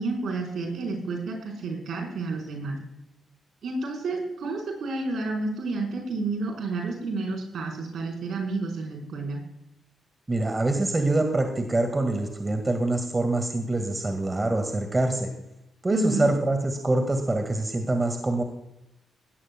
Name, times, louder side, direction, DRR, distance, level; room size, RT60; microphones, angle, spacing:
voice 1, 0.0-2.8 3.6-9.4 15.9-16.3, right 3 dB, 70° right, 1 dB, 4.8 m, -30 dB
voice 2, 10.3-15.3 15.8-18.4, right 2 dB, 30° right, 5 dB, 2.0 m, -25 dB
18.5 x 14.0 x 2.3 m, 0.87 s
hypercardioid pair, 45°, 0 cm